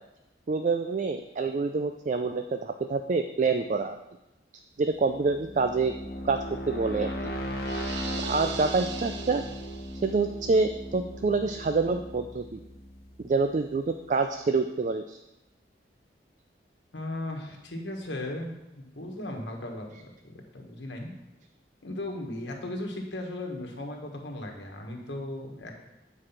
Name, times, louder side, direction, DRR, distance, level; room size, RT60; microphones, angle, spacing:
voice 1, 0.5-4.0 4.8-5.9 6.2-7.1 8.2-9.5 10.0-12.6 13.2-15.2, right 4 dB, 40° right, 7 dB, 0.3 m, -27 dB
sound 1, 4.9-13.7, equal, 55° left, 1.1 m, -37 dB
sound 2, 7.6-10.2, right 6 dB, 75° right, 0.7 m, -39 dB
voice 2, 16.9-21.1 21.8-25.7, left 1 dB, 80° left, 2 dB, 1.4 m, -37 dB
8.7 x 4.7 x 5.7 m, 0.95 s
head